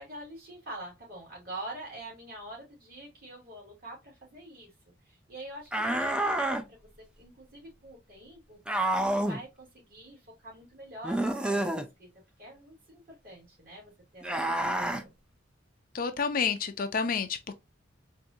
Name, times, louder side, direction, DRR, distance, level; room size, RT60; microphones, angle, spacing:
voice 1, 0.0-4.7 5.0-8.6 9.0-11.7 12.0-12.1 12.4-15.1, right 1 dB, 50° right, 2.7 m, -45 dB
sound 1, 5.7-6.6 8.7-9.4 11.0-11.9 14.2-15.0, right 1 dB, 5° right, 0.4 m, -28 dB
voice 2, 15.9-17.5, left 5 dB, 50° left, 0.5 m, -29 dB
4.5 x 2.7 x 2.6 m
head